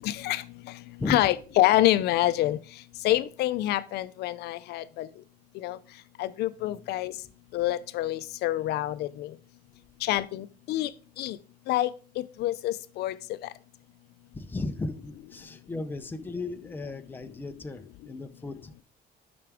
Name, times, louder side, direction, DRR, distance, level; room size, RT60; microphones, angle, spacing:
voice 1, 0.0-0.4 1.1-2.6 3.0-5.1 5.6-5.8 6.2-7.1 7.5-9.3 10.0-10.9 11.2-11.4 11.7-11.9 12.2-13.1, left 15 dB, 70° left, 0.5 m, -26 dB
voice 2, 1.0-1.3 6.6-6.9 14.3-18.8, left 2 dB, 10° left, 0.6 m, -36 dB
11.0 x 5.9 x 3.5 m
cardioid pair, 150°, 17 cm